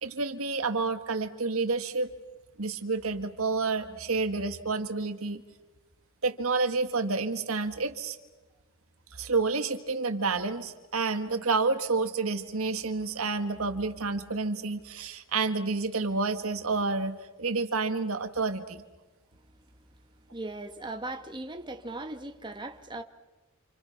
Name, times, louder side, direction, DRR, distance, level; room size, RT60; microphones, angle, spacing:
voice 1, 0.0-2.1 2.6-5.4 6.2-8.2 9.1-18.8, right 4 dB, 70° right, 1.8 m, -29 dB
voice 2, 20.3-23.0, right 2 dB, 20° right, 1.6 m, -38 dB
29.0 x 27.5 x 6.0 m
head